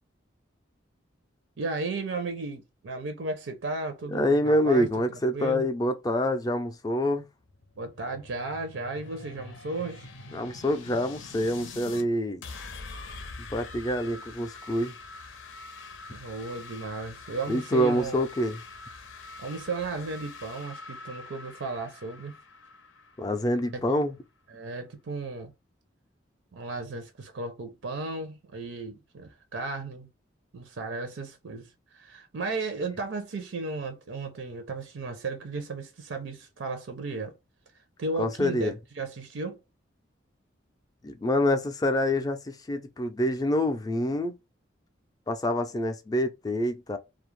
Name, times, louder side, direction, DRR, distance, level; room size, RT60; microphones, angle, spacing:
voice 1, 1.6-4.9 5.3-5.7 7.8-10.1 16.1-18.2 19.4-22.4 23.7-24.0 24.5-25.5 26.5-30.1 30.5-37.3 38.0-39.6, right 3 dB, 80° right, 0.5 m, -35 dB
voice 2, 4.1-7.2 10.3-12.4 13.5-14.9 17.5-18.6 23.2-24.1 38.2-38.7 41.0-44.4 45.3-47.0, left 1 dB, 20° left, 0.3 m, -26 dB
sound 1, 7.4-12.0 12.4-24.0, left 3 dB, 85° left, 0.6 m, -45 dB
2.3 x 2.0 x 3.0 m
head